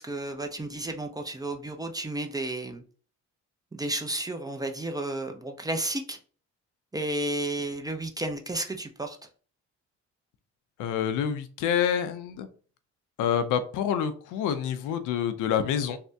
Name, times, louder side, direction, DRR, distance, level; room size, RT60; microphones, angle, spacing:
voice 1, 0.0-2.8 3.7-6.2 6.9-9.2, right 1 dB, 15° right, 5 dB, 0.4 m, -32 dB
voice 2, 10.8-12.5 13.2-16.0, left 8 dB, 85° left, 10 dB, 0.5 m, -27 dB
3.4 x 2.1 x 2.6 m, 0.40 s
cardioid pair, 90°, 30 cm